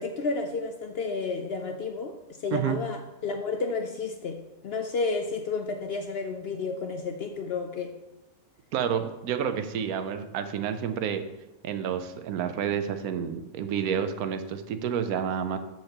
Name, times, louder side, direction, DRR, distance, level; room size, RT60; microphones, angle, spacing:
voice 1, 0.0-4.4 4.6-7.9, left 4 dB, 65° left, 5 dB, 0.6 m, -31 dB
voice 2, 8.7-11.2 11.6-15.6, right 8 dB, 90° right, 9 dB, 1.1 m, -29 dB
13.0 x 4.5 x 2.9 m, 1.0 s
omnidirectional pair, 1.5 m